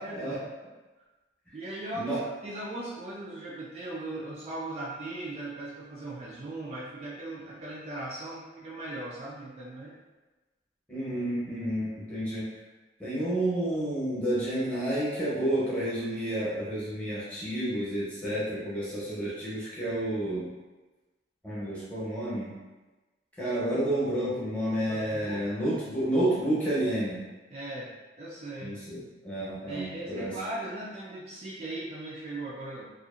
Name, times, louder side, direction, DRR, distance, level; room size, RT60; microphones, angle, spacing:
voice 1, 0.0-0.4 1.5-10.0 24.9-25.4 27.5-27.9 28.2-28.7 29.7-32.9, right 2 dB, 35° right, -6 dB, 0.3 m, -38 dB
voice 2, 10.9-12.5 13.0-20.5 21.4-22.5 23.4-27.2 28.6-30.3, right 1 dB, 5° left, -10 dB, 0.8 m, -30 dB
2.7 x 2.4 x 2.4 m, 1.2 s
head